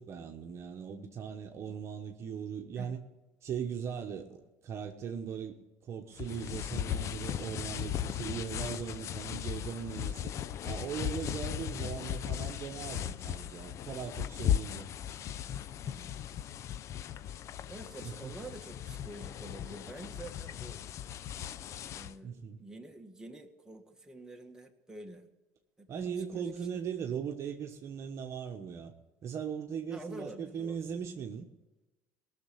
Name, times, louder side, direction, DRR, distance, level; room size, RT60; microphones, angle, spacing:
voice 1, 0.0-3.0 3.4-10.3 10.6-14.9 18.0-18.4 22.2-22.6 25.9-28.9 29.2-31.5, right 7 dB, 45° right, 4 dB, 1.2 m, -39 dB
sound 1, 6.2-22.2, left 10 dB, 50° left, 0.5 m, -37 dB
voice 2, 17.7-20.8 21.9-25.3 25.8-26.5 29.9-30.8, right 2 dB, 10° right, 2 dB, 1.8 m, -48 dB
18.0 x 6.7 x 8.6 m, 1.0 s
supercardioid pair, 90°, 6 cm